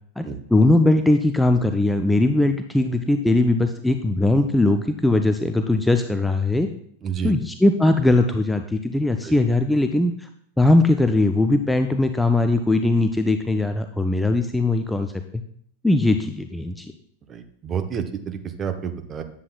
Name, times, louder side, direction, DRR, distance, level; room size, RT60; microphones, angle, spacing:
voice 1, 0.2-6.7 7.2-10.3 10.6-15.1 15.8-16.9, left 2 dB, 5° left, 7 dB, 0.4 m, -20 dB
voice 2, 7.0-7.3 9.2-9.4 17.3-19.2, right 7 dB, 25° right, 7 dB, 0.7 m, -29 dB
9.7 x 7.5 x 2.3 m, 0.66 s
figure-of-eight pair, 90°, 0 cm